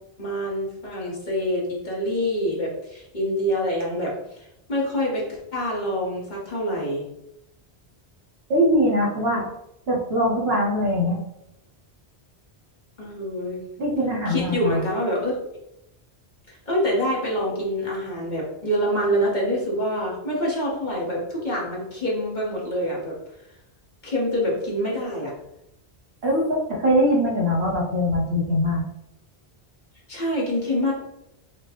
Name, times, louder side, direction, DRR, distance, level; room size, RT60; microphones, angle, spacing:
voice 1, 0.2-7.0 13.0-13.6 14.3-15.3 16.5-23.1 24.0-25.3 30.1-30.9, equal, 45° left, -4 dB, 1.2 m, -26 dB
voice 2, 8.5-9.5 9.9-11.2 13.8-14.9 26.2-28.8, equal, 65° right, -3 dB, 1.3 m, -22 dB
5.6 x 2.2 x 2.9 m, 0.82 s
omnidirectional pair, 1.1 m